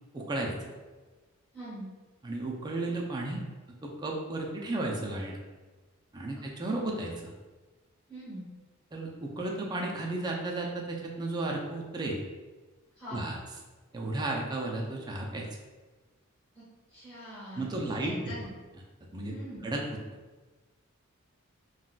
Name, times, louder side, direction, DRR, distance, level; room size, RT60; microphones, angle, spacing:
voice 1, 0.1-0.7 2.2-3.4 3.8-5.4 6.1-7.3 8.9-12.2 13.1-13.4 13.9-15.5 17.5-18.4 19.1-19.3 19.6-19.8, right 2 dB, 20° right, -1 dB, 0.4 m, -33 dB
voice 2, 1.5-1.9 8.1-8.4 13.0-13.3 16.5-16.6 16.9-17.7 18.0-18.5 19.3-19.6, equal, 15° left, -14 dB, 1.4 m, -43 dB
3.7 x 2.3 x 2.3 m, 1.3 s
head